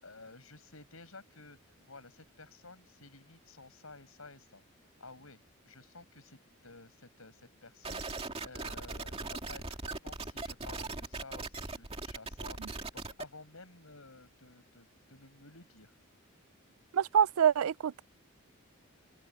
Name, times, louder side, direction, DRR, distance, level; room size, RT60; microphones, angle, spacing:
voice 1, 0.0-4.6 5.0-5.4 5.6-15.9, left 3 dB, 80° left, 6.2 m, -53 dB
sound 1, 7.8-13.2, right 3 dB, 25° right, 2.5 m, -40 dB
voice 2, 16.9-18.0, right 8 dB, 85° right, 0.4 m, -26 dB
open air
head